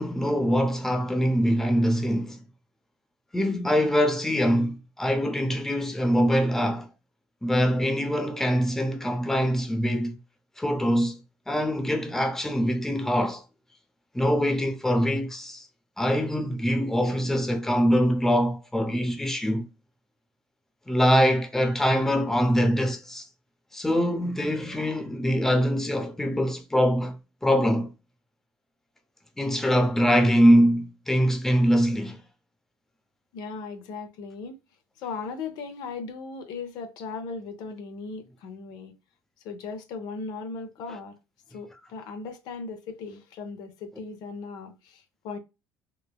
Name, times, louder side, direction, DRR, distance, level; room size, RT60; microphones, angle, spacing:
voice 1, 0.0-2.4 3.3-6.9 7.4-10.2 10.6-11.2 11.5-13.4 14.1-15.7 16.0-19.7 20.9-23.3 23.7-27.9 29.4-32.2, equal, 5° left, 0.6 m, -23 dB
voice 2, 33.3-34.6 35.0-38.9 39.4-41.2 41.5-45.4, left 4 dB, 70° left, 0.6 m, -37 dB
3.1 x 2.1 x 2.2 m
supercardioid pair, 90°, 7 cm